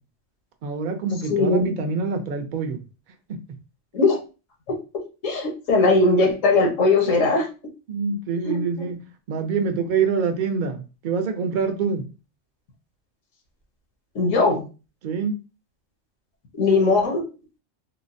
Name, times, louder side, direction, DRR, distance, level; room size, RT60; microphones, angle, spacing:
voice 1, 0.6-2.8 3.3-3.4 7.9-12.0 15.0-15.4, right 5 dB, 55° right, 0.5 m, -25 dB
voice 2, 1.3-1.7 3.9-4.2 5.2-7.5 8.4-8.9 14.1-14.6 16.6-17.2, left 3 dB, 90° left, 1.2 m, -19 dB
3.9 x 2.0 x 2.6 m
omnidirectional pair, 1.3 m